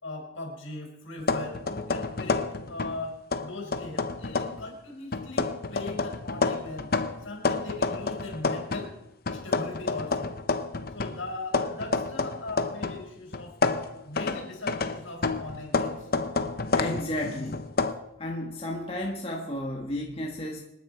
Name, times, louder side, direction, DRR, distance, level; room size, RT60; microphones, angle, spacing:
voice 1, 0.0-6.9 7.2-9.0 9.3-10.3 10.9-13.6 14.0-16.1, left 2 dB, 70° left, 0 dB, 5.2 m, -39 dB
sound 1, 1.2-3.0 3.3-4.6 5.1-8.9 9.3-13.0 13.3-17.9, left 3 dB, 50° left, 0.9 m, -29 dB
voice 2, 16.7-17.7 18.2-20.6, left 1 dB, 30° left, 0 dB, 1.6 m, -32 dB
27.0 x 10.0 x 4.6 m, 0.87 s
head